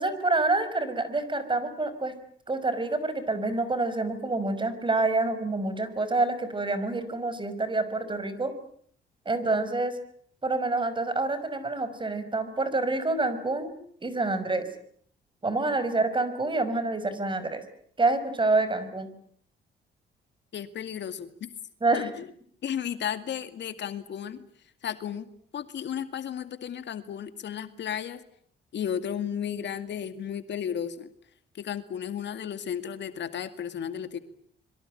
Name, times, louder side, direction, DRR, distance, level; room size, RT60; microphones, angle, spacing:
voice 1, 0.0-2.1 2.5-8.5 9.3-10.0 10.4-13.7 14.0-14.6 15.4-17.6 18.0-19.1 21.8-22.1, right 2 dB, 25° right, 13 dB, 5.6 m, -27 dB
voice 2, 20.5-21.5 21.9-22.3 22.6-24.4 24.8-28.2 28.7-31.1 31.5-34.2, left 8 dB, 65° left, 11 dB, 2.2 m, -34 dB
26.0 x 23.5 x 9.0 m, 0.63 s
cardioid pair, 90°, 20 cm